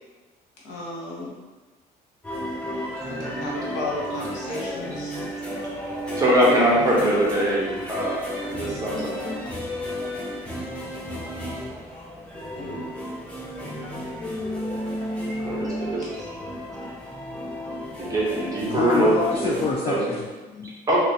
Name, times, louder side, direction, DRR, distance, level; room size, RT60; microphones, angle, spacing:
voice 1, 0.6-1.4 3.0-5.2 12.6-12.8, left 2 dB, 90° left, -5 dB, 1.2 m, -33 dB
sound 1, 2.2-19.7, equal, 5° left, 0.8 m, -33 dB
voice 2, 6.1-9.1 15.4-16.2 18.0-19.5 19.9-20.0 20.9-21.0, right 1 dB, 20° right, -5 dB, 1.0 m, -22 dB
voice 3, 18.7-20.7, left 5 dB, 35° left, 0 dB, 0.3 m, -27 dB
3.0 x 2.9 x 2.8 m, 1.2 s
cardioid pair, 110°, 17 cm